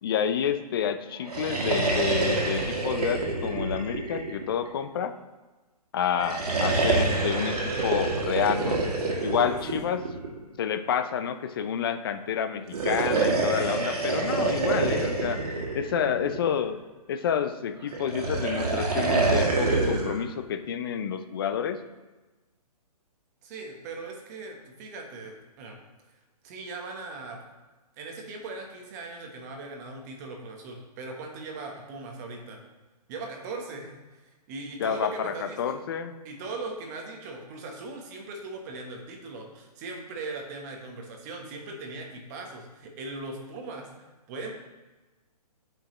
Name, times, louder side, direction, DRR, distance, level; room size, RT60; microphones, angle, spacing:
voice 1, 0.0-5.1 5.9-8.9 9.2-10.0 10.6-16.8 17.1-21.8 34.8-36.1, left 8 dB, 35° left, 9 dB, 0.5 m, -29 dB
sound 1, 1.2-4.8 6.1-10.4 12.6-16.6 17.9-20.2, right 3 dB, 70° right, 1.8 m, -27 dB
voice 2, 23.4-25.8 26.4-27.4 28.0-32.6 33.1-35.7 36.2-44.5, right 3 dB, 25° right, 1 dB, 1.1 m, -39 dB
8.3 x 5.3 x 3.1 m, 1.2 s
hypercardioid pair, 155°, 20 cm